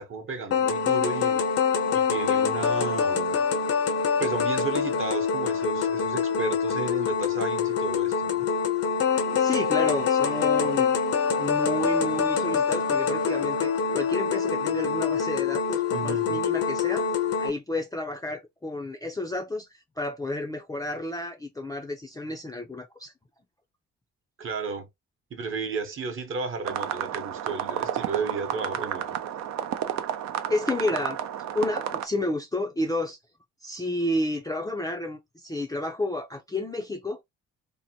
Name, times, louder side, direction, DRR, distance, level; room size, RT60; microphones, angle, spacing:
voice 1, 0.0-1.5 1.9-3.4 4.2-8.5 15.9-16.4 24.4-24.9 25.3-29.1, right 4 dB, 45° right, 0.9 m, -33 dB
sound 1, 0.5-17.5, left 6 dB, 55° left, 0.7 m, -25 dB
voice 2, 9.3-10.9 11.4-17.0 17.4-19.7 20.0-23.1 30.5-31.2 31.5-33.2 33.6-37.2, left 1 dB, 10° left, 0.4 m, -31 dB
sound 2, 26.6-32.1, right 10 dB, 65° right, 0.5 m, -31 dB
2.8 x 2.1 x 2.7 m
cardioid pair, 90°, 30 cm